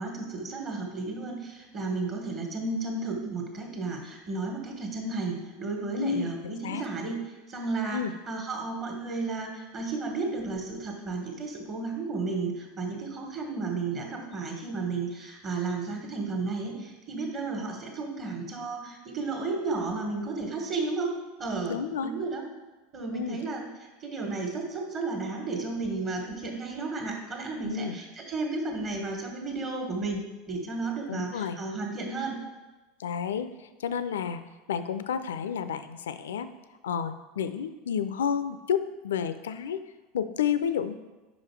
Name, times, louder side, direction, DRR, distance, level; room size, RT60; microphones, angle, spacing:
voice 1, 0.0-7.2 7.5-21.8 22.0-22.4 22.9-23.6 24.0-32.4, right 3 dB, 35° right, 2 dB, 1.4 m, -33 dB
voice 2, 5.9-6.8 7.9-8.1 21.7-22.1 23.1-23.4 27.6-28.0 31.1-31.6 33.0-34.4 34.7-36.5 36.8-39.8 40.1-40.9, left 7 dB, 70° left, 12 dB, 0.3 m, -30 dB
5.3 x 5.0 x 4.6 m, 1.1 s
figure-of-eight pair, 80°, 0 cm